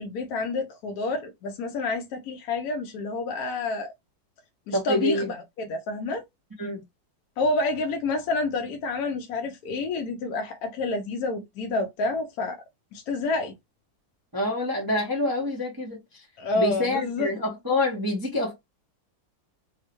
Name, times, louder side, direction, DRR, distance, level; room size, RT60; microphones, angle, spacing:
voice 1, 0.0-3.9 4.7-6.2 7.4-12.6 12.9-13.5 16.4-17.3, left 3 dB, 70° left, 0.9 m, -28 dB
voice 2, 4.7-5.3 6.6-6.8 14.3-16.0 16.5-18.6, left 1 dB, 30° right, 0.4 m, -26 dB
3.5 x 2.1 x 2.9 m
omnidirectional pair, 2.0 m